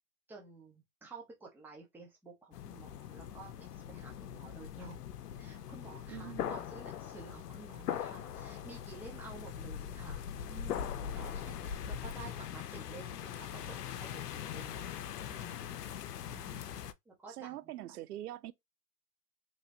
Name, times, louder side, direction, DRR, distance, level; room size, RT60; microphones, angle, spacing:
voice 1, 0.3-5.0 5.4-14.9 15.3-16.0 17.1-17.6, right 3 dB, 5° right, 0.6 m, -52 dB
sound 1, 2.5-16.9, left 9 dB, 80° left, 0.6 m, -41 dB
voice 2, 6.1-6.5 16.3-16.7 17.3-18.5, right 14 dB, 75° right, 0.6 m, -44 dB
3.1 x 2.9 x 2.6 m
hypercardioid pair, 120°, 47 cm